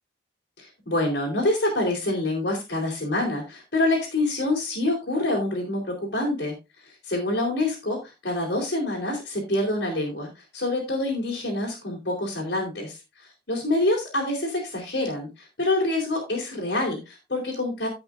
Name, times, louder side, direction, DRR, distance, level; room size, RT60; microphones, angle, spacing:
voice 1, 0.6-6.6 6.9-17.9, left 2 dB, 65° left, -2 dB, 3.8 m, -26 dB
16.5 x 5.9 x 2.6 m, 0.25 s
head